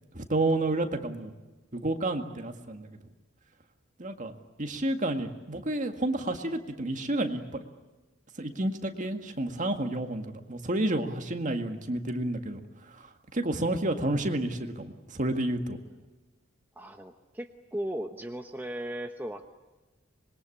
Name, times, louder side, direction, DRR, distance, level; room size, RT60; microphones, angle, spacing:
voice 1, 0.1-1.3 1.7-2.9 4.0-4.3 4.6-7.4 8.4-12.6 13.0-13.1 13.3-15.8, right 1 dB, 40° right, 5 dB, 1.9 m, -30 dB
voice 2, 16.8-19.5, right 1 dB, 10° right, 4 dB, 1.0 m, -37 dB
26.0 x 22.0 x 8.6 m, 1.2 s
head